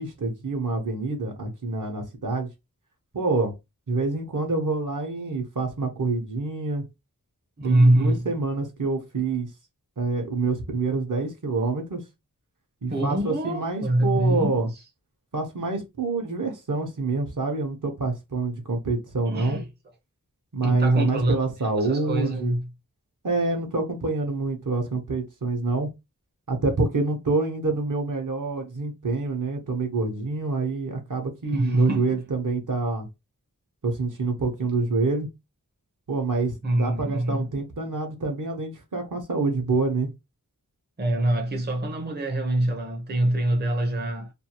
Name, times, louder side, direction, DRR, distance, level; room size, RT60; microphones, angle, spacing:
voice 1, 0.0-2.5 3.1-3.5 3.9-6.9 7.6-9.5 10.0-12.0 12.8-14.7 15.3-19.6 20.5-22.6 23.2-25.9 26.5-33.1 33.8-35.3 36.1-40.1, right 3 dB, 60° right, 0.9 m, -27 dB
voice 2, 7.6-8.3 12.9-14.6 19.3-19.7 20.6-21.4 21.8-22.7 31.5-32.1 36.6-37.5 41.0-44.3, right 1 dB, 30° right, 0.6 m, -24 dB
2.6 x 2.3 x 2.9 m
wide cardioid pair, 50°, 35 cm